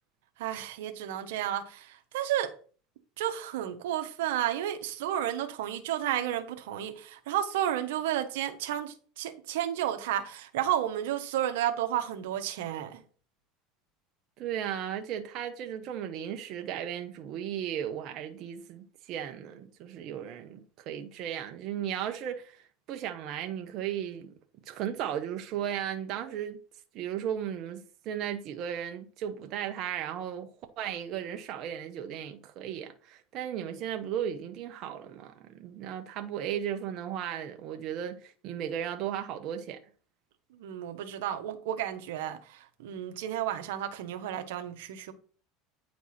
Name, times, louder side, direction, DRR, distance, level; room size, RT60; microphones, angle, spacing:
voice 1, 0.4-2.5 3.2-13.0 40.6-45.1, right 11 dB, 85° right, 1.1 m, -32 dB
voice 2, 14.4-24.3 24.7-26.6 26.9-30.5 30.8-39.8, right 9 dB, 55° right, 0.9 m, -35 dB
9.4 x 4.6 x 4.3 m
supercardioid pair, 110°, 0 cm